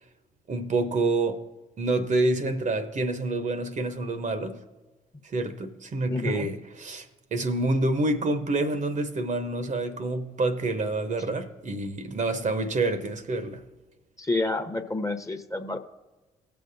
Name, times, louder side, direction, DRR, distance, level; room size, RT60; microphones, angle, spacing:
voice 1, 0.5-1.4 1.8-4.6 5.2-7.1 7.3-13.6, right 2 dB, 40° right, 0.8 m, -27 dB
voice 2, 6.1-6.5 14.2-15.8, left 2 dB, 15° left, 0.9 m, -29 dB
17.5 x 6.8 x 2.6 m
hypercardioid pair, 45°, 19 cm